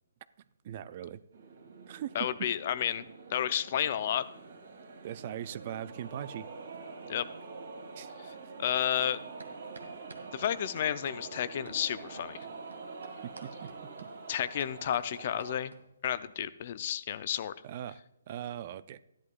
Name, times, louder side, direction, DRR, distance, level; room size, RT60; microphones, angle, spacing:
voice 1, 0.6-1.2 1.9-2.3 5.0-6.5 7.9-8.1 13.2-13.7 17.6-19.0, right 10 dB, 35° right, 16 dB, 0.4 m, -40 dB
sound 1, 1.3-15.6, right 4 dB, 60° right, 2.0 m, -46 dB
voice 2, 2.1-3.0 3.3-4.3 7.1-7.3 8.6-9.2 10.3-12.4 14.3-15.7 16.0-17.5, left 10 dB, 40° left, 15 dB, 0.5 m, -31 dB
sound 2, 9.0-9.1 9.4-16.1, right 3 dB, 90° right, 1.7 m, -52 dB
13.5 x 11.0 x 2.4 m, 0.89 s
hypercardioid pair, 160°, 0 cm